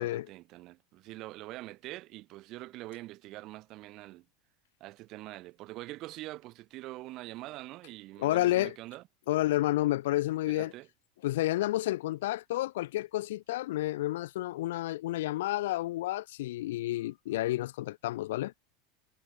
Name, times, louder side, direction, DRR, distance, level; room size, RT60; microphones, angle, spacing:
voice 1, 0.0-4.2 4.8-9.0 10.5-10.9, right 18 dB, 45° right, 2.6 m, -44 dB
voice 2, 8.2-8.7 9.3-10.7 11.2-18.5, left 16 dB, 80° left, 1.3 m, -30 dB
supercardioid pair, 145°, 0 cm